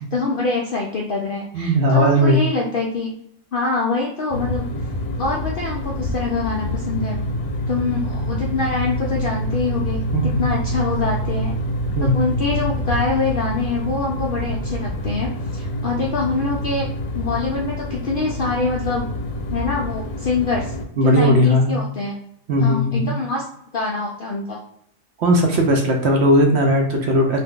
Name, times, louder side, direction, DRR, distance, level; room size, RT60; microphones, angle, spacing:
voice 1, 0.0-3.1 3.5-4.6 5.2-7.2 7.7-11.6 12.1-16.9 17.1-19.1 19.5-20.7 21.0-22.2 22.6-23.5 23.7-24.6, left 3 dB, 65° left, -2 dB, 0.5 m, -24 dB
voice 2, 1.5-2.4 10.1-10.5 11.9-12.2 21.0-21.8 22.5-23.1 25.2-27.4, equal, 65° right, 2 dB, 0.7 m, -17 dB
sound 1, 4.3-20.8, equal, 85° left, 1.0 m, -26 dB
2.7 x 2.2 x 3.6 m, 0.73 s
omnidirectional pair, 1.4 m